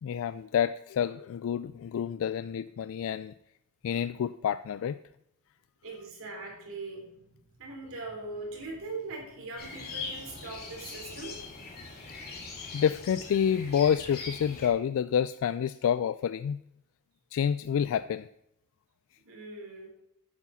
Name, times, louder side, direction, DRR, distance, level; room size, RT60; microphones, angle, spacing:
voice 1, 0.0-3.3 3.8-5.0 12.7-16.6 17.3-18.3, left 8 dB, 65° left, 14 dB, 0.3 m, -28 dB
voice 2, 5.8-7.3 7.6-11.4 19.2-19.9, right 2 dB, 65° right, 0 dB, 3.4 m, -41 dB
sound 1, 9.6-14.7, left 4 dB, 45° left, 2.7 m, -41 dB
9.6 x 7.2 x 5.6 m, 0.79 s
head